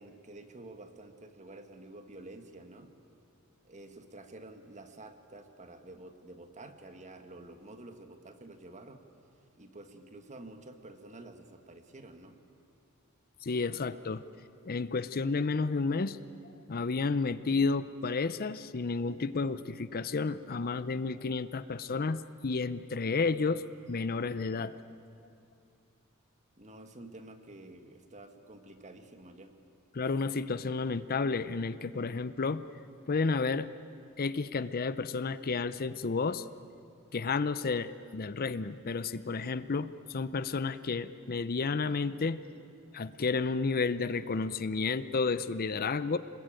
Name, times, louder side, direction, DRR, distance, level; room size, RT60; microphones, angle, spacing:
voice 1, 0.0-2.9 3.6-9.0 9.6-12.4 26.6-29.5, right 2 dB, 35° right, 7 dB, 1.7 m, -49 dB
voice 2, 13.4-14.2 14.6-16.2 16.7-24.7 29.9-32.6 33.1-33.7 34.2-36.4 37.1-42.4 42.9-46.2, left 4 dB, 45° left, 14 dB, 0.6 m, -31 dB
27.0 x 21.0 x 9.1 m, 2.5 s
head